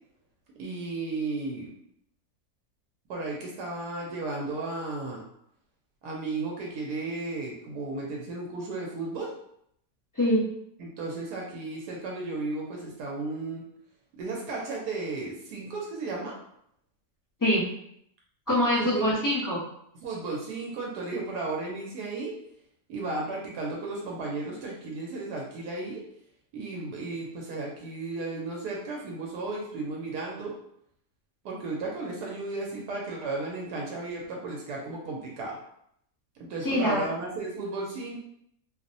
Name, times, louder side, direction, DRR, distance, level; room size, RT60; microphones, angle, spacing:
voice 1, 0.6-1.7 3.1-5.2 6.0-9.3 10.8-13.7 14.2-16.4 18.8-19.1 20.0-22.3 22.9-26.0 26.5-30.5 31.4-35.6 36.4-38.2, right 3 dB, 90° right, -2 dB, 1.2 m, -34 dB
voice 2, 10.1-10.5 17.4-17.7 18.5-19.6 36.6-37.0, equal, 20° left, -8 dB, 0.6 m, -24 dB
2.8 x 2.0 x 2.6 m, 0.71 s
omnidirectional pair, 1.7 m